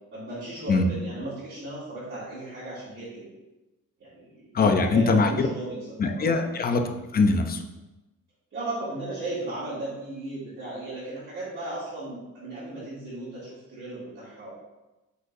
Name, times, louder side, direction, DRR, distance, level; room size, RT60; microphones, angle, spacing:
voice 1, 0.1-3.3 4.0-5.8 6.2-6.4 8.5-14.5, right 2 dB, 40° right, -12 dB, 2.2 m, -36 dB
voice 2, 4.5-5.5 6.0-7.6, left 3 dB, 30° left, 6 dB, 0.5 m, -22 dB
7.9 x 5.0 x 2.6 m, 1.0 s
cardioid pair, 170°, 32 cm